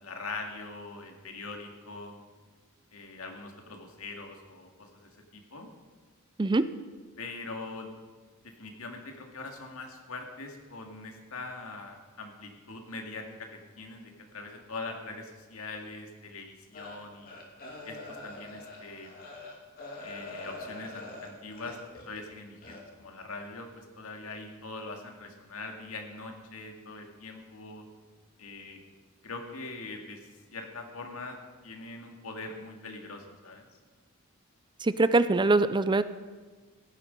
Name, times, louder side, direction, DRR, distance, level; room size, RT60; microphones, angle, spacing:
voice 1, 0.0-2.2 2.9-5.7 7.2-7.9 8.6-17.3 17.9-18.0 18.2-19.1 20.0-21.8 22.1-27.8 28.4-28.8 29.2-31.4 31.6-33.7, left 3 dB, 85° left, 3 dB, 2.1 m, -42 dB
sound 1, 16.7-22.2 22.6-22.8, left 2 dB, 45° left, 2.6 m, -44 dB
voice 2, 34.8-36.0, right 2 dB, 20° right, 13 dB, 0.4 m, -23 dB
15.5 x 11.5 x 5.3 m, 1.4 s
head